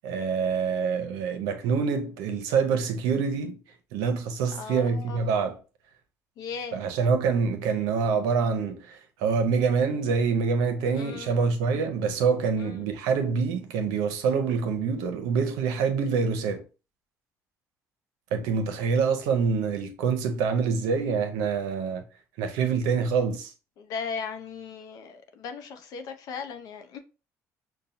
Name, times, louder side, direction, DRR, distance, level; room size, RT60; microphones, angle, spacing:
voice 1, 0.0-3.6 3.9-5.6 6.7-16.6 18.3-22.0 22.4-23.5, right 5 dB, 90° right, 0.7 m, -26 dB
voice 2, 4.5-5.5 6.4-6.8 10.9-11.4 12.6-12.9 23.8-27.0, left 6 dB, 70° left, 0.6 m, -37 dB
5.5 x 2.2 x 2.6 m
supercardioid pair, 90°, 6 cm